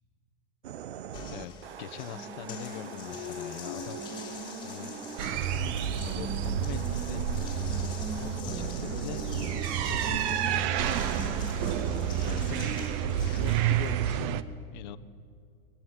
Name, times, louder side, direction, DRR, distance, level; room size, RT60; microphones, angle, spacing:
sound 1, 0.6-12.6, right 9 dB, 85° right, 1.1 m, -43 dB
Water tap faucet, 1.1-13.9, left 2 dB, 15° left, 2.9 m, -41 dB
voice 1, 1.8-4.0 4.6-5.0 6.0-7.3 8.1-9.2 9.7-10.7 11.1-12.7 13.2-15.0, left 12 dB, 50° left, 9 dB, 1.2 m, -43 dB
sound 2, 5.2-14.4, right 10 dB, 30° right, 0.8 m, -30 dB
21.0 x 19.5 x 9.7 m, 2.2 s
supercardioid pair, 165°, 30 cm